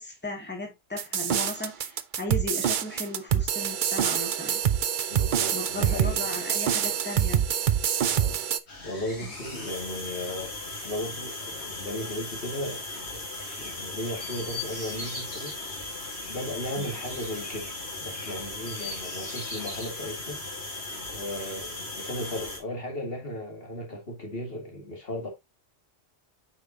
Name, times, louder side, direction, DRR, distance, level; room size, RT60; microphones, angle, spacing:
voice 1, 0.0-4.6 5.5-7.5 9.2-9.3 16.8-16.9, left 2 dB, 10° left, 2.0 m, -36 dB
sound 1, 1.0-8.6, right 9 dB, 55° right, 0.7 m, -26 dB
voice 2, 5.1-6.3 8.1-8.4 8.8-10.6 10.8-12.8 13.6-15.6 16.3-17.7 18.0-20.4 21.1-25.3, left 1 dB, 60° left, 2.4 m, -36 dB
sound 2, 8.7-22.6, left 2 dB, 80° left, 2.7 m, -38 dB
Chirp tweet, 12.8-20.0, left 3 dB, 40° left, 2.7 m, -43 dB
8.4 x 5.3 x 2.7 m
omnidirectional pair, 1.1 m